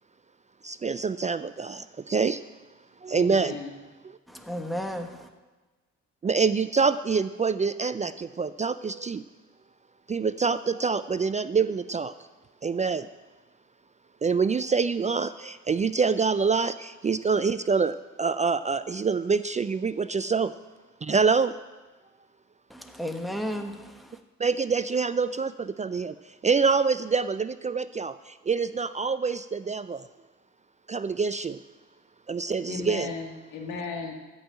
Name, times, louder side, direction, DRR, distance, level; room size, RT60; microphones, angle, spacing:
voice 1, 0.6-2.4 3.0-3.6 6.2-9.2 10.1-12.1 12.6-13.1 14.2-20.5 21.0-21.5 24.4-26.1 26.4-28.1 28.5-30.0 30.9-31.6 32.3-33.1, right 5 dB, 25° right, 13 dB, 0.4 m, -26 dB
voice 2, 3.1-3.7 32.7-34.1, left 4 dB, 85° left, 3 dB, 2.0 m, -36 dB
voice 3, 4.3-5.3 22.7-24.2, equal, ahead, 5 dB, 1.3 m, -34 dB
13.5 x 5.6 x 9.0 m, 1.2 s
cardioid pair, 90°, 30 cm